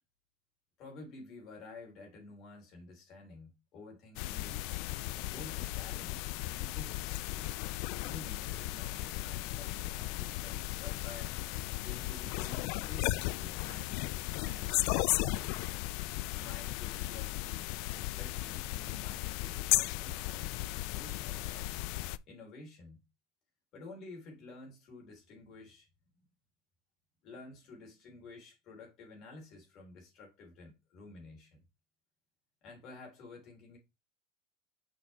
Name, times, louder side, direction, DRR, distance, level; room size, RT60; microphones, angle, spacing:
voice 1, 0.8-4.7 5.3-7.6 8.0-11.4 11.8-15.6 16.3-20.5 20.9-21.8 22.3-23.0 23.7-25.9 26.1-26.3 27.2-31.6 32.6-33.8, left 3 dB, 35° left, 3.4 m, -51 dB
sound 1, 4.2-22.2, left 18 dB, 50° left, 0.3 m, -35 dB
6.5 x 4.4 x 4.3 m
cardioid pair, 180°, 0 cm